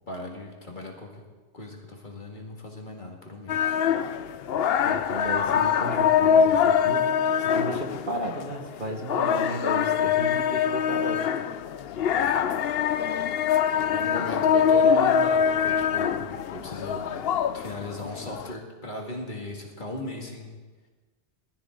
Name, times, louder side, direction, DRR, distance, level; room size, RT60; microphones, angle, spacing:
voice 1, 0.1-1.2 1.5-3.8 12.1-12.4 13.9-17.1 17.5-20.6, left 2 dB, 45° left, 0 dB, 2.2 m, -37 dB
sound 1, 3.5-18.5, left 8 dB, 65° left, 0.8 m, -24 dB
voice 2, 4.8-7.0 7.4-11.3 14.1-14.6, right 1 dB, 50° right, 2 dB, 1.7 m, -34 dB
20.5 x 13.5 x 3.8 m, 1.3 s
omnidirectional pair, 1.1 m